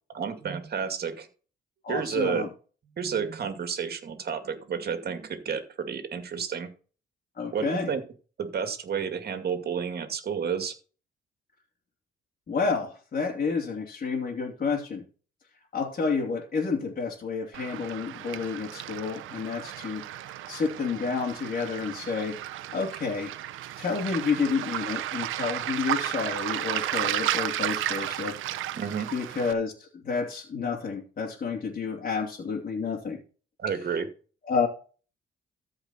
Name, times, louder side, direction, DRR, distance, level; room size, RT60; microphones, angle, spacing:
voice 1, 0.1-1.3 1.9-2.4 3.0-6.7 7.5-8.0 8.4-10.7 27.0-27.1 28.7-29.1 33.6-34.1, right 6 dB, 50° right, 7 dB, 2.3 m, -31 dB
voice 2, 1.8-2.5 7.4-7.9 12.5-15.0 15.7-20.0 20.5-23.3 23.8-28.4 29.1-33.2 34.5-34.7, left 5 dB, 45° left, -1 dB, 2.9 m, -30 dB
Waves surf, 17.5-29.5, right 13 dB, 85° right, 0.9 m, -33 dB
14.0 x 5.2 x 4.3 m, 0.36 s
cardioid pair, 90°, 20 cm